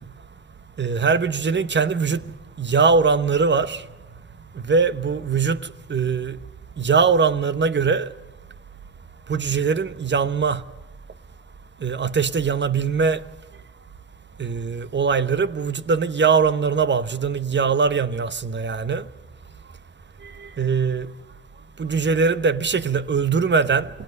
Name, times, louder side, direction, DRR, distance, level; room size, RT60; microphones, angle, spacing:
voice 1, 0.8-2.2 2.6-3.8 4.7-5.6 5.9-6.4 6.8-8.1 9.3-10.6 11.8-13.2 14.4-19.0 20.6-21.1 21.8-23.9, right 5 dB, 40° right, 1.1 m, -21 dB
27.5 x 18.0 x 5.5 m
cardioid pair, 55°, 29 cm